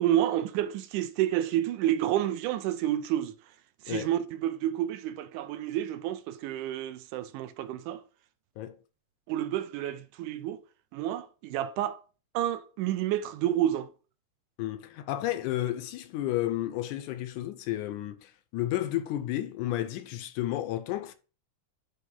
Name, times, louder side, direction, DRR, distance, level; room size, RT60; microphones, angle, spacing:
voice 1, 0.0-3.4 3.9-8.0 9.3-10.6 10.9-12.0 12.3-13.9, right 12 dB, 85° right, 2.1 m, -29 dB
voice 2, 14.6-21.1, left 13 dB, 80° left, 1.9 m, -32 dB
7.9 x 3.3 x 3.6 m
omnidirectional pair, 3.7 m